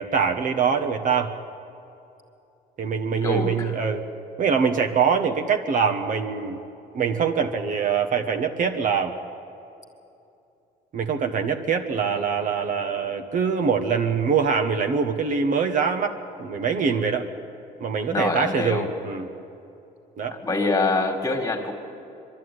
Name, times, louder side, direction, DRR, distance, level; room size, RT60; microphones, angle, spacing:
voice 1, 0.0-1.3 2.8-4.0 4.4-6.6 6.9-9.1 10.9-17.3 17.8-19.3 20.2-20.3, right 6 dB, 50° right, 5 dB, 1.3 m, -24 dB
voice 2, 3.2-3.9 18.1-18.9 20.4-21.7, left 3 dB, 20° left, 3 dB, 2.2 m, -25 dB
23.0 x 12.0 x 9.6 m, 2.8 s
cardioid pair, 110°, 17 cm